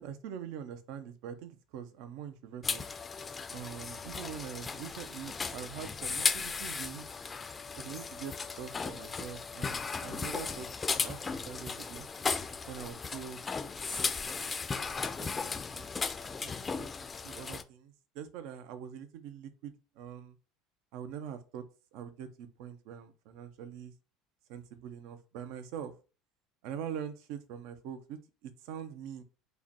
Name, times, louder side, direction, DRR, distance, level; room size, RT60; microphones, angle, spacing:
voice 1, 0.0-2.8 3.5-7.1 7.8-12.1 12.7-13.4 13.9-14.0 14.3-14.8 15.2-15.9 16.4-20.4 20.9-21.6 21.9-23.9 24.5-25.9 26.6-29.2, right 8 dB, 70° right, 0.6 m, -44 dB
sound 1, 2.6-17.6, left 5 dB, 25° left, 0.4 m, -36 dB
4.8 x 2.2 x 2.9 m
supercardioid pair, 110°, 0 cm